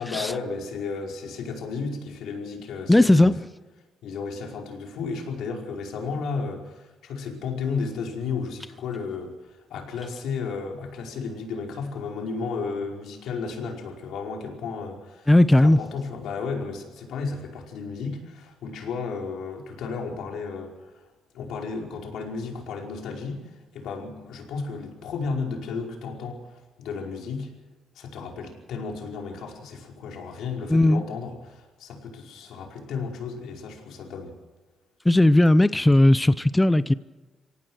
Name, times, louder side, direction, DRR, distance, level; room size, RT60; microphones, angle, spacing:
voice 1, 0.0-3.3 4.0-15.3 15.6-20.9 21.3-27.5 27.9-34.3, left 4 dB, 80° left, 5.0 m, -33 dB
voice 2, 2.9-3.5 15.3-15.8 30.7-31.0 35.0-36.9, left 1 dB, 10° left, 0.6 m, -17 dB
25.0 x 18.0 x 6.4 m
cardioid pair, 90°, 0 cm